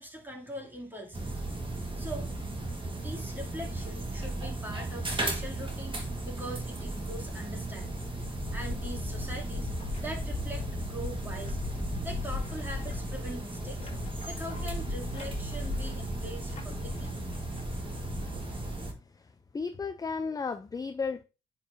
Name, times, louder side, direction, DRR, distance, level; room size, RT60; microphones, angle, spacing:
voice 1, 0.0-1.4 2.0-2.3 3.0-6.0 6.2-8.0 8.5-9.7 10.0-11.7 12.0-13.9 14.3-17.1, equal, 10° right, 2.6 m, -42 dB
sound 1, 1.1-18.9, right 2 dB, 25° right, 1.5 m, -36 dB
sound 2, 8.1-18.9, left 4 dB, 35° left, 2.3 m, -39 dB
voice 2, 19.5-21.2, left 5 dB, 20° left, 0.4 m, -33 dB
9.8 x 4.5 x 2.7 m
cardioid pair, 90°, 20 cm